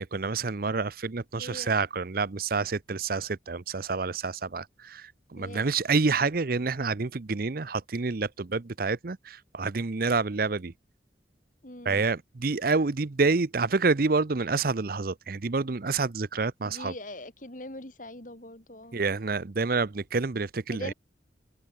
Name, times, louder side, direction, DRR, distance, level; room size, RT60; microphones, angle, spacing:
voice 1, 0.0-10.7 11.8-16.9 18.9-20.9, right 4 dB, 50° right, 0.7 m, -28 dB
voice 2, 1.4-1.7 5.4-5.7 11.6-12.1 16.6-19.0 20.7-20.9, left 1 dB, 45° left, 3.3 m, -42 dB
head